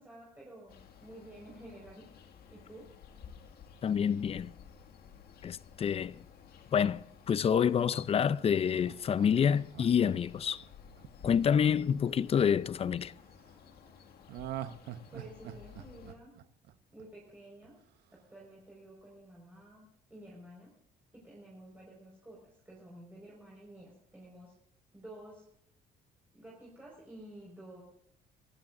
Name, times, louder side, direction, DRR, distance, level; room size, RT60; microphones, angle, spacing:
voice 1, 0.0-2.0 2.5-2.9 15.1-16.3 16.9-17.8 18.3-20.7 21.1-24.5 24.9-25.4 26.3-27.8, right 1 dB, 10° right, 5.0 m, -51 dB
sound 1, 0.7-16.2, left 7 dB, 65° left, 2.1 m, -55 dB
voice 2, 3.8-4.5 5.4-6.2 6.7-10.6 11.2-13.1, left 7 dB, 35° left, 0.5 m, -28 dB
Laughter, 8.5-12.7 14.3-17.3 17.6-17.7, right 11 dB, 75° right, 0.9 m, -45 dB
24.0 x 15.0 x 2.6 m
cardioid pair, 110°, 17 cm